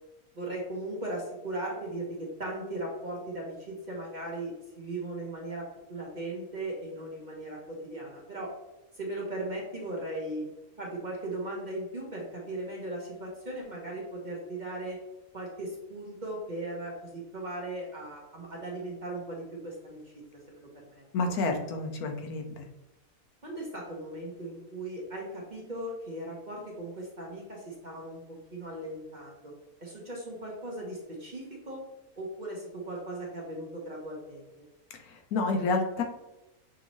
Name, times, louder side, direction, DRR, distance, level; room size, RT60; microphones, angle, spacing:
voice 1, 0.3-8.5 8.9-10.5 10.8-15.0 15.3-20.0 20.5-20.7 21.0-21.1 23.4-29.5 29.8-31.8 32.2-34.5, right 1 dB, 40° right, -3 dB, 0.8 m, -38 dB
voice 2, 21.1-22.6 35.0-36.0, left 3 dB, 85° left, 3 dB, 1.2 m, -29 dB
6.2 x 2.7 x 3.0 m, 0.96 s
omnidirectional pair, 1.6 m